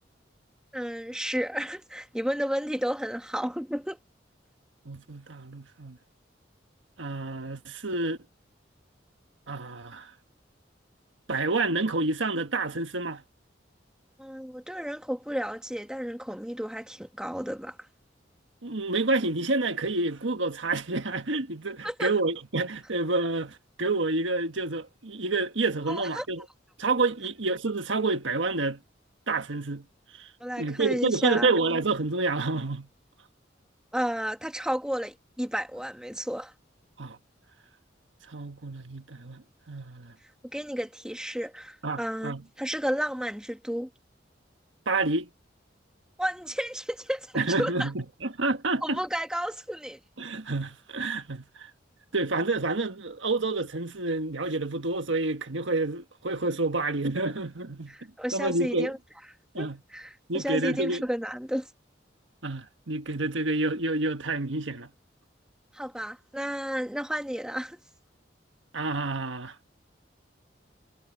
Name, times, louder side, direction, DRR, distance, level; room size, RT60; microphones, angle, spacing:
voice 1, 0.7-4.0 14.2-17.8 21.8-22.1 25.9-26.3 30.4-31.5 33.9-36.5 40.5-43.9 46.2-47.9 48.8-50.0 57.9-59.0 59.6-61.7 65.7-67.8, equal, 5° right, 2.1 m, -32 dB
voice 2, 4.8-6.0 7.0-8.2 9.5-10.1 11.3-13.2 18.6-26.4 26.8-28.8 29.3-29.8 30.2-30.3 30.6-32.9 37.0-37.2 38.3-40.1 41.8-42.4 44.9-45.3 47.3-49.0 50.2-51.7 52.1-57.9 58.3-58.9 59.5-59.8 60.3-61.0 62.4-64.9 68.7-69.5, right 3 dB, 90° right, 1.5 m, -28 dB
head